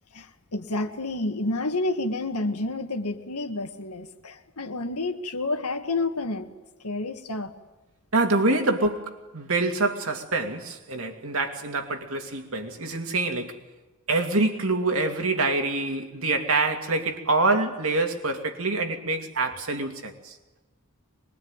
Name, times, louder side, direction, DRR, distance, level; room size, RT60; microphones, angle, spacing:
voice 1, 0.1-6.5 6.8-7.5, left 2 dB, 90° left, 2.0 m, -29 dB
voice 2, 8.1-13.6 14.1-20.3, right 2 dB, 65° right, 2.6 m, -26 dB
24.0 x 21.5 x 9.0 m
head